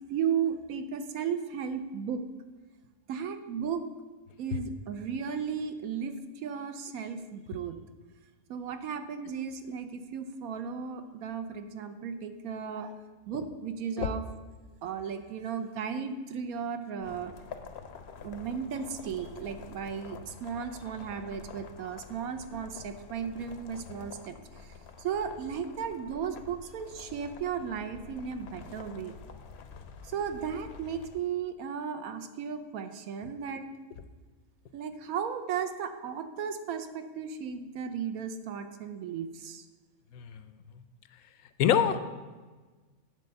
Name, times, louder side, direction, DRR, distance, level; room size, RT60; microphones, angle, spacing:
voice 1, 0.1-2.2 3.1-3.8 4.4-7.8 8.5-12.9 13.3-14.2 14.8-17.3 18.2-29.1 30.0-33.7 34.7-39.6, right 7 dB, 80° right, 8 dB, 1.1 m, -35 dB
sound 1, 17.0-31.2, left 5 dB, 60° left, 0.7 m, -48 dB
voice 2, 41.6-42.0, left 9 dB, 80° left, 10 dB, 1.0 m, -25 dB
9.6 x 4.3 x 6.7 m, 1.3 s
omnidirectional pair, 1.5 m